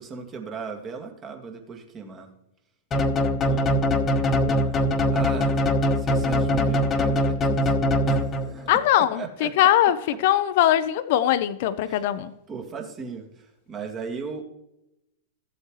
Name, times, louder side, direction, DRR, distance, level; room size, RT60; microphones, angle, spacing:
voice 1, 0.0-2.3 3.4-3.8 4.3-5.6 6.0-7.8 8.0-9.5 11.8-12.1 12.5-14.4, right 5 dB, 30° right, 1.9 m, -37 dB
sound 1, 2.9-8.7, left 1 dB, 25° left, 1.2 m, -22 dB
voice 2, 8.7-10.0 10.2-12.3, left 12 dB, 55° left, 0.6 m, -21 dB
14.5 x 7.8 x 3.2 m
hypercardioid pair, 100°, 0 cm